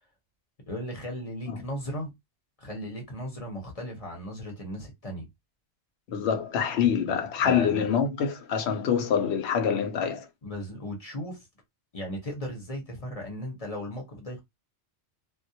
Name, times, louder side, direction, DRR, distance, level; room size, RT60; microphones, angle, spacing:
voice 1, 0.7-2.1 2.6-5.3 7.1-7.9 10.4-11.5 11.9-14.4, equal, 35° left, 0.8 m, -36 dB
voice 2, 6.1-10.3, left 7 dB, 70° left, 0.8 m, -26 dB
2.2 x 2.0 x 2.7 m
omnidirectional pair, 1.2 m